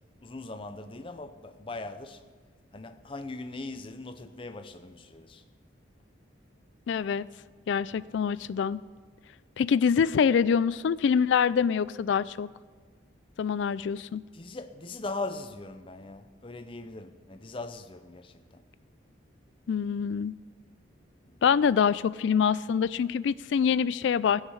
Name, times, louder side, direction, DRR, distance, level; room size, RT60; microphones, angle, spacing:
voice 1, 0.2-2.2 2.7-5.4 14.3-18.6 21.2-21.3, left 3 dB, 25° left, 0.6 m, -40 dB
voice 2, 6.9-7.2 7.7-8.8 9.6-12.5 13.4-14.2 19.7-20.3 21.4-24.4, left 7 dB, 70° left, 0.3 m, -25 dB
13.5 x 6.5 x 9.5 m
head